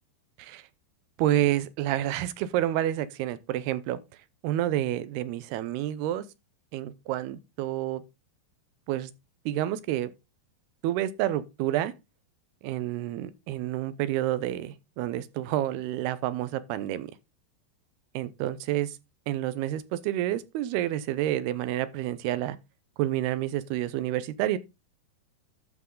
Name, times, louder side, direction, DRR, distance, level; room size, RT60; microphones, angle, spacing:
voice 1, 1.2-4.0 4.4-6.3 6.7-8.0 8.9-9.1 9.5-10.1 10.8-11.9 12.6-17.1 18.1-19.0 19.3-22.6 23.0-24.6, right 13 dB, 80° right, 2.7 m, -29 dB
12.0 x 6.1 x 3.8 m
omnidirectional pair, 4.7 m